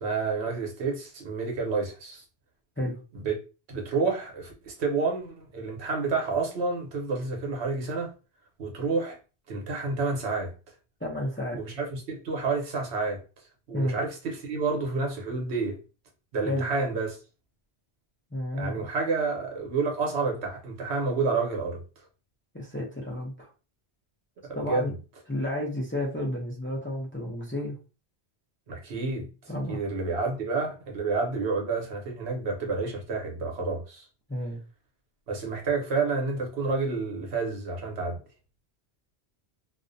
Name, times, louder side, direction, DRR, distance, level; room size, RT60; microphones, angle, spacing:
voice 1, 0.0-2.2 3.2-3.3 3.7-8.1 8.6-9.2 9.5-10.5 11.5-13.2 13.7-15.8 16.3-17.2 18.5-21.8 24.6-24.9 28.7-29.3 29.7-34.1 35.3-38.2, right 4 dB, 85° right, 1.0 m, -29 dB
voice 2, 11.0-11.6 13.7-14.0 16.4-16.7 18.3-18.9 22.5-23.5 24.5-24.9 25.3-27.7 29.5-29.8 34.3-34.6, left 1 dB, 20° left, 0.4 m, -31 dB
2.4 x 2.1 x 2.5 m
omnidirectional pair, 1.1 m